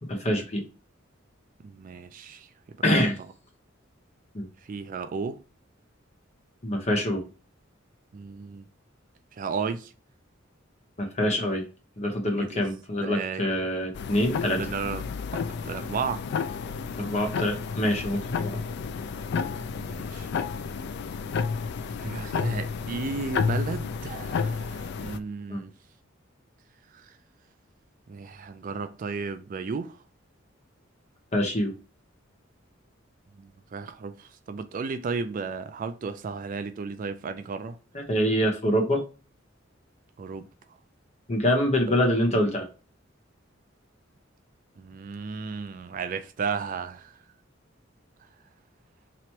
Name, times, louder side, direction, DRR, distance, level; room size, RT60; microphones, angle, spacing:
voice 1, 0.1-0.6 2.8-3.2 4.3-4.4 6.6-7.2 11.0-11.6 12.0-14.6 17.0-18.6 25.5-25.6 31.3-31.7 37.9-39.0 41.3-42.7, equal, 35° left, 0.9 m, -25 dB
voice 2, 1.6-2.5 4.7-5.4 8.1-8.7 9.4-9.9 12.4-12.7 13.0-13.5 14.5-15.0 15.6-16.2 19.7-20.3 22.0-25.7 28.1-30.0 33.4-37.8 40.2-40.5 44.8-47.1, right 5 dB, 45° right, 0.3 m, -34 dB
sound 1, 13.9-25.2, left 5 dB, 60° left, 0.3 m, -31 dB
3.0 x 2.9 x 4.4 m
head